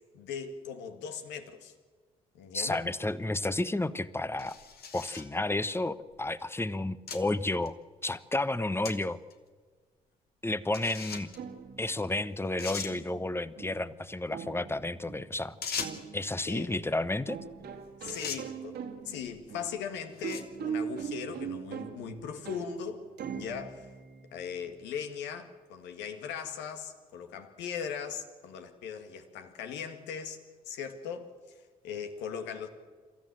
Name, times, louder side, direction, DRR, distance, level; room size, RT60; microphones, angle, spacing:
voice 1, 0.1-1.7 2.3-2.8 16.5-16.8 18.0-23.9 24.3-30.4 30.7-31.3 31.8-32.7, left 7 dB, 75° left, 8 dB, 1.9 m, -39 dB
voice 2, 2.5-4.6 4.9-7.7 8.0-9.2 10.4-11.3 11.8-15.5 16.1-17.4, left 2 dB, 15° left, 16 dB, 1.1 m, -31 dB
sound 1, 4.4-5.3 6.1-6.2 7.1-7.2 7.7-7.8 8.8-9.0 9.3-9.4 10.7-11.4 12.1-12.2 12.6-12.9 15.6-16.1 17.5-17.7 18.0-18.4 19.2-19.5 20.1-20.6, left 6 dB, 60° left, 2.2 m, -39 dB
sound 2, 11.4-24.9, right 7 dB, 65° right, 2.1 m, -42 dB
26.5 x 14.0 x 7.7 m, 1.5 s
hypercardioid pair, 45°, 18 cm